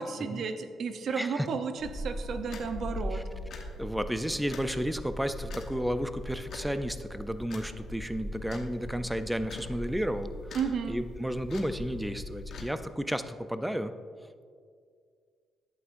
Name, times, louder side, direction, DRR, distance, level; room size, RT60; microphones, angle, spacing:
voice 1, 0.0-3.2 10.5-11.0, right 5 dB, 60° right, 8 dB, 0.7 m, -33 dB
voice 2, 1.1-1.5 3.1-3.2 3.8-10.6 10.9-13.9, equal, 5° right, 10 dB, 0.5 m, -32 dB
sound 1, 1.8-12.7, left 1 dB, 65° left, 1.2 m, -40 dB
11.0 x 8.4 x 2.6 m, 2.1 s
cardioid pair, 90°, 0 cm